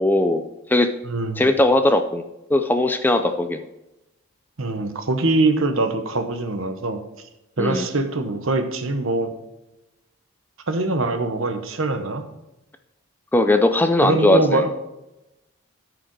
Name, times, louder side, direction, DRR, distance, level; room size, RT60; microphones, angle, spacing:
voice 1, 0.0-0.9 1.4-2.2 2.5-3.6 7.6-7.9 13.3-14.6, left 1 dB, 10° left, 7 dB, 0.3 m, -19 dB
voice 2, 1.0-1.5 4.6-7.0 7.6-9.3 10.7-12.3 14.0-14.7, right 2 dB, 65° right, 7 dB, 1.0 m, -23 dB
12.5 x 5.0 x 4.6 m, 0.95 s
head